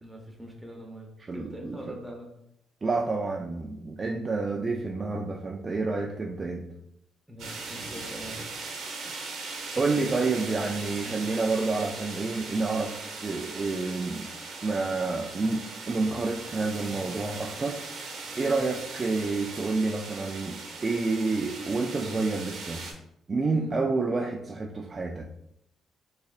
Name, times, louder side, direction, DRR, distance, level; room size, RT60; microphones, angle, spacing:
voice 1, 0.0-2.3 7.3-8.7 9.9-10.4 11.0-11.2 18.4-18.6 23.5-23.7, equal, 5° right, 0 dB, 0.9 m, -43 dB
voice 2, 1.3-1.9 2.8-6.6 9.8-14.3 14.6-22.8 23.3-25.2, right 3 dB, 30° right, 1 dB, 0.3 m, -29 dB
sound 1, 7.4-22.9, right 3 dB, 75° right, 0.9 m, -39 dB
3.7 x 3.2 x 2.4 m, 0.78 s
cardioid pair, 90°, 0 cm